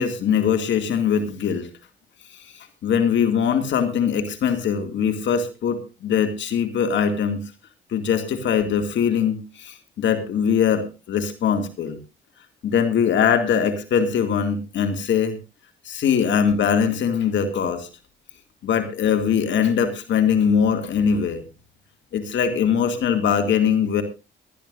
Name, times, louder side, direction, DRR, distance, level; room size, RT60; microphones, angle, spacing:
voice 1, 0.0-1.7 2.3-7.4 7.9-12.0 12.6-15.4 15.8-17.9 18.6-21.4 22.1-24.0, left 7 dB, 70° left, 7 dB, 2.2 m, -22 dB
21.0 x 13.0 x 2.5 m, 0.28 s
cardioid pair, 90°, 20 cm